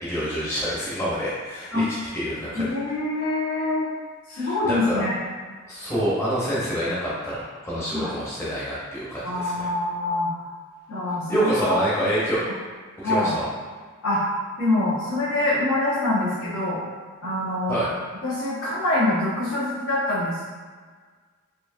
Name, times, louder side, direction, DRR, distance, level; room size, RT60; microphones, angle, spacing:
voice 1, 0.0-1.8 2.1-2.6 4.3-5.0 5.7-7.4 7.6-9.7 11.3-12.4 13.0-13.5 17.7-17.9, equal, 15° left, -9 dB, 0.9 m, -26 dB
voice 2, 2.5-3.9 4.3-5.2 7.9-8.1 9.2-10.3 10.9-12.1 13.0-13.3 14.0-14.2 14.6-16.8 17.2-17.7 18.2-20.4, left 2 dB, 70° left, -15 dB, 1.5 m, -25 dB
4.3 x 2.7 x 2.6 m, 1.5 s
head